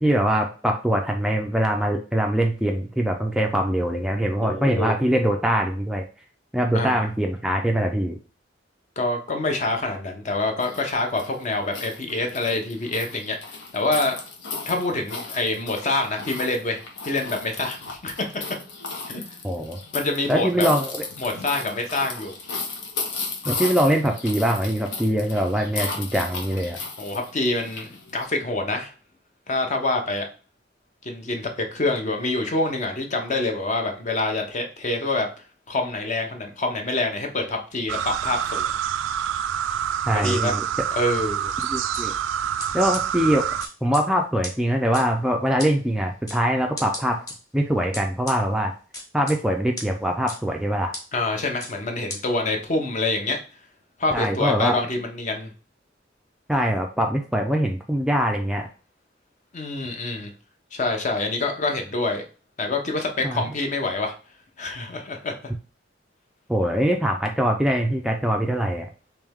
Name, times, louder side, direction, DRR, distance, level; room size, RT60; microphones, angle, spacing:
voice 1, 0.0-6.0 6.5-8.2 19.4-19.8 20.3-21.0 23.5-26.8 40.1-40.6 41.7-42.1 42.7-43.5 43.8-47.2 47.5-48.7 49.1-50.9 54.1-54.8 56.5-58.6 63.2-63.4 66.5-68.9, equal, 5° right, 2 dB, 0.4 m, -23 dB
voice 2, 4.4-4.9 6.7-7.1 9.0-14.2 14.7-16.8 17.1-18.3 19.1-19.2 19.9-20.7 21.2-22.4 27.0-28.9 29.5-30.3 31.0-35.3 35.7-38.8 40.1-40.6 40.9-41.5 51.1-53.4 54.0-55.5 59.5-60.3 60.7-62.2 62.6-64.1 64.6-65.3, left 2 dB, 40° left, 4 dB, 0.7 m, -26 dB
sound 1, 10.6-28.2, left 4 dB, 85° left, 0.9 m, -35 dB
sound 2, 37.9-43.7, right 9 dB, 80° right, 0.3 m, -27 dB
sound 3, 41.6-42.0 42.6-42.7 42.9-43.0 43.6-44.0 44.4-44.5 44.9-45.0 45.6-45.7 46.3-46.4 46.8-47.3 47.9-48.4 48.9-49.4 49.8-49.9 50.3-50.4 50.9-51.0 51.6-51.7 52.1-52.2, left 1 dB, 20° left, 1.2 m, -34 dB
3.4 x 3.1 x 3.5 m, 0.36 s
head